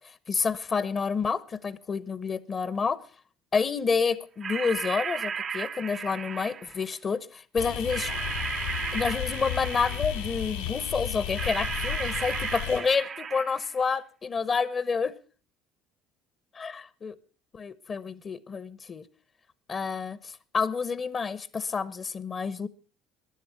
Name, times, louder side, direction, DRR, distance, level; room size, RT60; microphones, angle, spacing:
voice 1, 0.3-3.0 3.5-8.1 8.9-15.1 16.6-17.1 17.5-19.0 19.7-22.7, left 5 dB, 35° left, 19 dB, 0.8 m, -29 dB
sound 1, 4.4-6.8 7.9-10.3 11.3-13.8, right 6 dB, 40° right, 0.6 m, -34 dB
sound 2, 7.6-12.8, left 10 dB, 80° left, 2.6 m, -34 dB
15.0 x 10.5 x 5.8 m, 0.40 s
hypercardioid pair, 60°, 0 cm